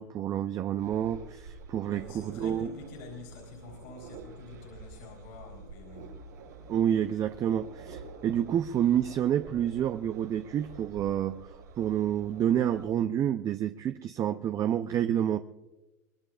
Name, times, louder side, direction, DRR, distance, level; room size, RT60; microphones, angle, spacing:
voice 1, 0.0-2.7 6.7-11.5 11.8-15.4, right 10 dB, 35° right, 9 dB, 0.6 m, -28 dB
sound 1, 0.8-12.9, right 3 dB, 80° right, 4.9 m, -48 dB
voice 2, 1.9-6.2, left 4 dB, 65° left, 2 dB, 4.2 m, -47 dB
23.5 x 21.5 x 2.5 m, 1.1 s
hypercardioid pair, 85°, 9 cm